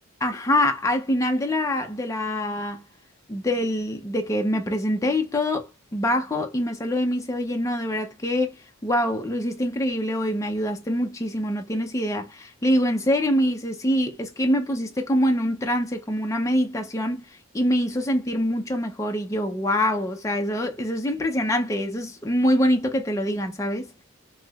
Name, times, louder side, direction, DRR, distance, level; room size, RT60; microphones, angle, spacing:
voice 1, 0.2-2.8 3.3-8.6 8.8-17.2 17.5-23.9, equal, 15° left, 0.4 m, -24 dB
3.1 x 2.7 x 2.2 m
head